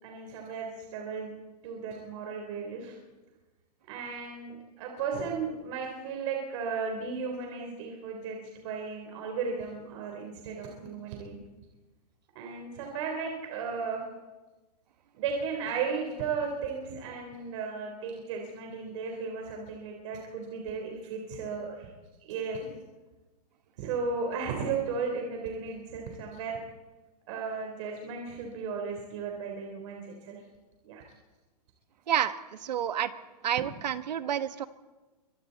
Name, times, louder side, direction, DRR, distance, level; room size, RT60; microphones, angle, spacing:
voice 1, 0.0-1.3 1.6-3.0 3.9-11.4 12.4-14.0 15.1-21.9 22.3-22.7 23.8-26.6 27.3-30.4 30.8-31.0, right 5 dB, 50° right, 1 dB, 3.8 m, -35 dB
voice 2, 32.1-33.1 33.4-34.6, right 10 dB, 80° right, 11 dB, 1.4 m, -29 dB
26.0 x 24.0 x 4.2 m, 1.2 s
hypercardioid pair, 155°, 21 cm